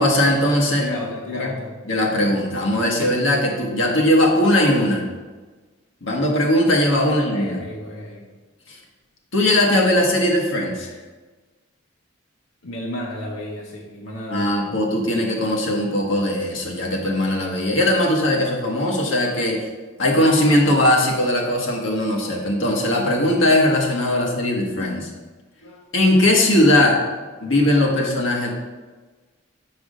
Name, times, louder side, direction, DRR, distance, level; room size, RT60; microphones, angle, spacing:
voice 1, 0.0-0.9 1.3-1.5 1.9-5.1 6.0-7.5 8.7-8.8 9.3-10.9 14.3-19.7 20.0-25.1 25.9-27.0 27.4-28.5, left 1 dB, 70° left, 0 dB, 1.4 m, -19 dB
voice 2, 0.8-1.8 7.0-8.3 12.6-14.8 25.6-25.8 27.4-27.6, left 1 dB, 90° left, -3 dB, 1.0 m, -33 dB
6.5 x 4.8 x 4.9 m, 1.3 s
head